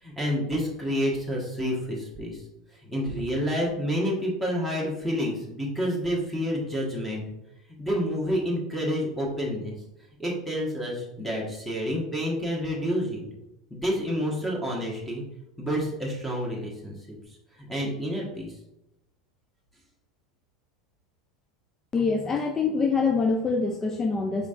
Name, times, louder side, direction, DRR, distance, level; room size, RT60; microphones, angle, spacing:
voice 1, 0.0-2.4 2.8-7.2 7.8-9.7 10.2-13.2 13.7-15.2 15.6-16.9 17.6-18.6, equal, 5° left, -3 dB, 1.3 m, -29 dB
voice 2, 21.9-24.5, left 4 dB, 20° left, 3 dB, 0.4 m, -25 dB
4.9 x 4.3 x 2.5 m, 0.90 s
figure-of-eight pair, 80°, 2 cm